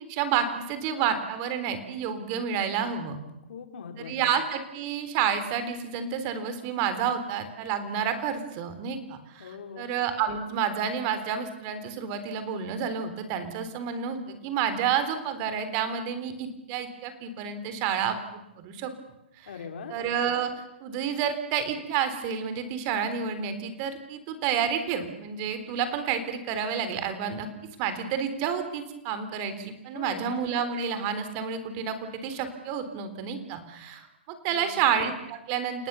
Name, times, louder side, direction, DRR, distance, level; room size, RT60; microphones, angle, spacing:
voice 1, 0.1-3.2 4.1-18.9 19.9-20.5 20.8-27.5 27.8-35.9, right 7 dB, 35° right, 10 dB, 3.8 m, -30 dB
voice 2, 3.5-4.3 9.4-9.9 19.5-20.1 29.9-30.3 34.5-34.9, left 6 dB, 65° left, 6 dB, 4.3 m, -41 dB
29.5 x 18.5 x 7.0 m, 0.87 s
hypercardioid pair, 145°, 6 cm